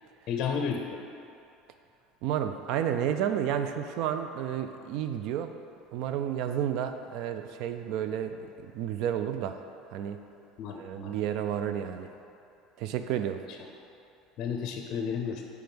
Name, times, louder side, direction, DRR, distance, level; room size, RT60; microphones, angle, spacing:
voice 1, 0.3-1.0 10.6-11.2 13.5-13.6 14.4-15.4, left 6 dB, 55° left, 4 dB, 0.5 m, -32 dB
voice 2, 2.2-5.5 5.9-9.6 9.9-10.2 10.8-12.1 12.8-13.4, right 9 dB, 65° right, 8 dB, 0.3 m, -31 dB
5.1 x 4.7 x 6.0 m, 2.7 s
supercardioid pair, 105°, 0 cm